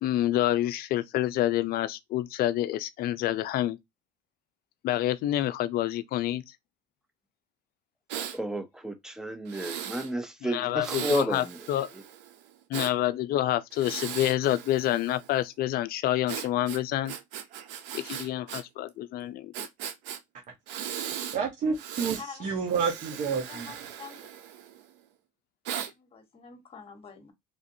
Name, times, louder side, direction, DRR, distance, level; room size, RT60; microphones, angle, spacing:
voice 1, 0.0-3.8 4.8-6.5 10.4-11.9 12.7-17.1 17.9-19.7, left 13 dB, 60° left, 0.4 m, -28 dB
Breathing, 8.1-8.4 9.5-10.1 10.8-12.9 13.7-15.3 16.3-18.6 18.9-19.0 19.5-20.2 20.7-21.4 21.7-22.2 22.7-24.9 25.6-25.9, right 9 dB, 80° right, 0.6 m, -38 dB
voice 2, 8.3-11.6 11.9-12.0, right 1 dB, 5° right, 0.6 m, -32 dB
voice 3, 21.3-23.7, right 6 dB, 45° right, 0.9 m, -29 dB
voice 4, 22.2-22.5 23.5-24.3 25.8-27.3, left 5 dB, 35° left, 1.3 m, -46 dB
3.4 x 2.5 x 2.7 m
cardioid pair, 110°, 18 cm